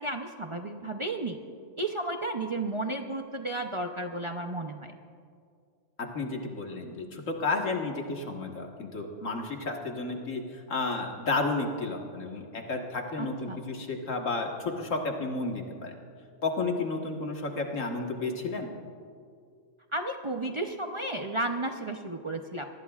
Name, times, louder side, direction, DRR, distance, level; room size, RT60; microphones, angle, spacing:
voice 1, 0.0-1.4 1.8-4.9 13.2-13.6 19.9-22.7, right 2 dB, 30° right, 4 dB, 0.6 m, -33 dB
voice 2, 6.0-16.0 16.4-18.7, left 3 dB, 85° left, 1 dB, 1.9 m, -32 dB
25.0 x 19.5 x 2.4 m, 2.2 s
omnidirectional pair, 1.3 m